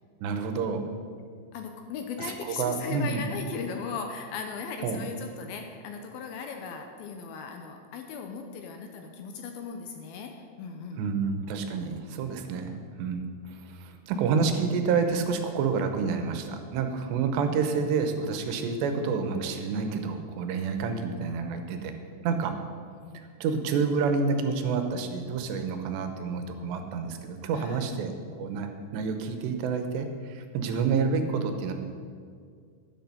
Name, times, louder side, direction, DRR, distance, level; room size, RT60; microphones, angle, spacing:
voice 1, 0.2-0.9 2.2-2.3 2.6-3.2 4.8-5.0 11.0-12.7 13.0-13.2 13.7-21.9 22.2-22.5 23.1-31.7, right 5 dB, 90° right, 6 dB, 3.2 m, -28 dB
voice 2, 1.5-11.1 27.5-27.8, left 5 dB, 80° left, 4 dB, 2.4 m, -37 dB
12.0 x 10.0 x 5.5 m, 2.1 s
omnidirectional pair, 4.8 m